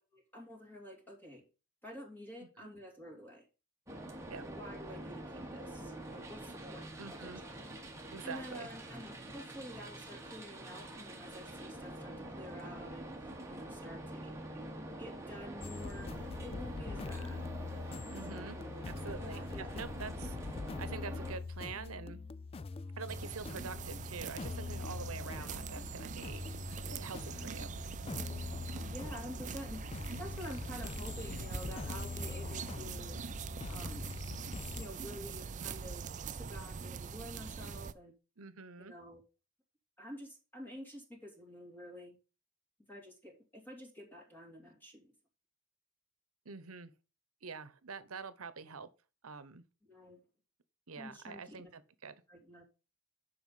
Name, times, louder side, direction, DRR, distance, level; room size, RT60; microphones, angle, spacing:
voice 1, 0.0-1.5 1.8-3.5 4.4-7.3 8.2-17.4 18.3-18.6 19.2-20.0 25.4-25.5 26.4-26.9 27.2-27.3 28.5-29.8 30.2-33.2 33.7-34.2 34.7-38.1 38.8-39.2 40.0-42.2 42.9-45.1 49.9-50.3 51.0-51.6 52.3-52.6, equal, 10° left, 2.7 m, -49 dB
sound 1, 3.9-21.4, right 1 dB, 15° right, 1.4 m, -46 dB
voice 2, 7.0-7.4 8.1-8.7 18.1-18.6 18.9-22.2 23.0-26.6 26.9-27.7 38.4-38.9 46.4-46.9 47.4-48.9 49.2-49.6 50.9-52.2, right 5 dB, 90° right, 1.0 m, -46 dB
sound 2, 15.6-34.9, left 3 dB, 25° left, 0.3 m, -43 dB
sound 3, 23.1-37.9, right 5 dB, 35° right, 0.4 m, -43 dB
7.6 x 5.7 x 5.5 m
head